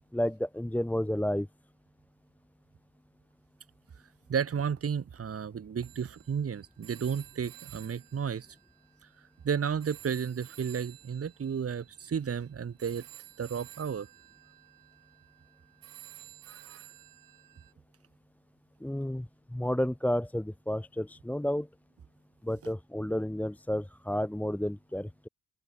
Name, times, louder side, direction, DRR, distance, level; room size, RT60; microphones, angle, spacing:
voice 1, 0.1-1.5 18.8-21.7 22.4-25.3, left 1 dB, 5° left, 1.6 m, -31 dB
voice 2, 4.3-8.5 9.4-13.0 13.4-14.1 16.5-16.8, right 7 dB, 45° right, 2.5 m, -33 dB
Telephone, 5.8-9.5 9.8-17.7, right 14 dB, 85° right, 4.1 m, -53 dB
cardioid pair, 95°, 34 cm